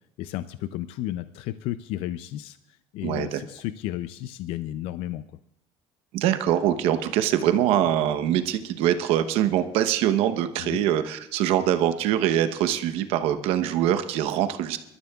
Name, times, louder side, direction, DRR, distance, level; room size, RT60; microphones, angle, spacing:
voice 1, 0.2-5.2 10.6-10.8, left 13 dB, 65° left, 12 dB, 0.5 m, -33 dB
voice 2, 3.0-3.4 6.1-14.8, right 11 dB, 70° right, 9 dB, 1.0 m, -23 dB
26.0 x 13.0 x 2.4 m, 0.81 s
cardioid pair, 155°, 10 cm